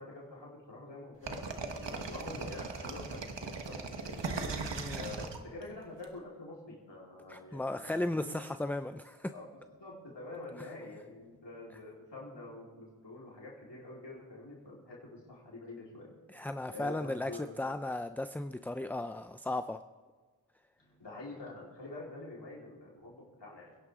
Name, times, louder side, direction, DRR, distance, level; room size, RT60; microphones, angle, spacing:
voice 1, 0.0-3.4 3.7-4.4 4.9-8.4 9.3-16.1 16.7-17.5 20.8-23.8, left 2 dB, 85° left, -5 dB, 4.2 m, -47 dB
sound 1, 1.3-6.0, right 4 dB, 85° right, 1.3 m, -38 dB
voice 2, 7.3-9.3 16.3-17.3 17.6-19.8, left 2 dB, 5° left, 9 dB, 0.4 m, -35 dB
27.0 x 11.0 x 3.7 m, 1.4 s
wide cardioid pair, 50°, 42 cm